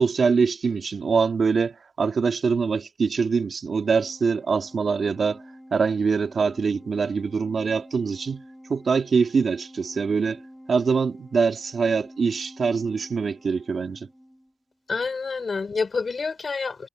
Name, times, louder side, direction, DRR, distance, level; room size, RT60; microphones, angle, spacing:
voice 1, 0.0-5.4 5.7-8.4 8.7-10.4 10.7-14.1, right 5 dB, 60° right, 2.0 m, -24 dB
Organ, 3.8-14.5, equal, ahead, 3.7 m, -48 dB
voice 2, 14.9-16.9, left 4 dB, 45° left, 3.5 m, -28 dB
wide cardioid pair, 125°, 0 cm